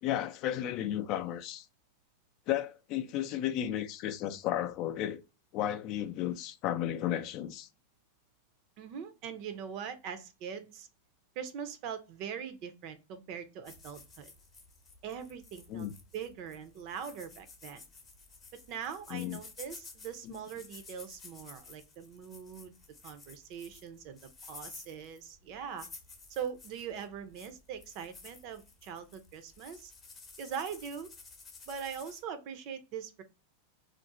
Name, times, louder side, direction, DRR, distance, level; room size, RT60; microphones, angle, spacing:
voice 1, 0.0-1.7 2.5-5.2 5.5-7.7 15.7-15.9 19.1-19.4 20.2-20.4, left 11 dB, 45° left, 0.4 m, -33 dB
voice 2, 8.8-10.9 11.4-14.3 15.0-15.9 16.1-17.8 18.7-22.7 23.0-25.9 26.3-29.9 30.4-31.1 31.7-33.2, right 7 dB, 50° right, 0.6 m, -42 dB
sound 1, 13.6-32.2, left 4 dB, 20° left, 0.7 m, -53 dB
2.5 x 2.0 x 3.8 m
supercardioid pair, 135°, 0 cm